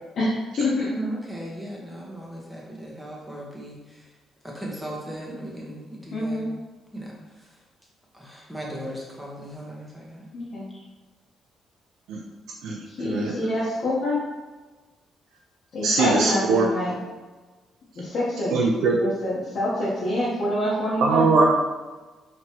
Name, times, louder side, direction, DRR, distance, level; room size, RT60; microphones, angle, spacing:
voice 1, 0.2-0.9 6.1-6.5 10.3-10.7 12.6-14.2 15.7-17.0 17.9-18.6 19.0-21.3, left 1 dB, 55° left, -9 dB, 1.0 m, -26 dB
voice 2, 0.9-4.0 4.4-6.4 6.9-7.1 8.1-10.2, right 1 dB, 5° right, -4 dB, 1.0 m, -37 dB
voice 3, 13.0-13.3 15.8-16.7 18.5-19.0 21.0-21.6, right 4 dB, 85° right, -2 dB, 0.5 m, -21 dB
4.3 x 3.2 x 2.9 m, 1.3 s
cardioid pair, 115°, 0 cm